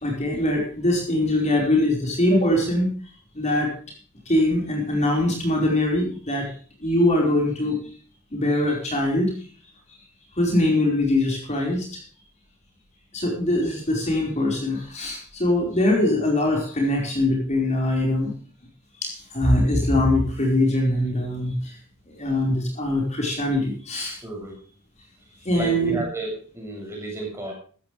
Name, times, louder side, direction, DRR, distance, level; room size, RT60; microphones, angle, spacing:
voice 1, 0.0-2.9 3.3-3.7 4.3-6.5 6.8-7.9 8.3-9.3 10.4-12.0 13.1-18.3 19.0-21.8 22.1-24.2 25.4-26.0, left 1 dB, 30° left, 0 dB, 4.8 m, -22 dB
voice 2, 24.2-24.6 25.5-27.5, right 1 dB, 10° right, 0 dB, 7.0 m, -32 dB
15.0 x 14.5 x 3.3 m, 0.41 s
head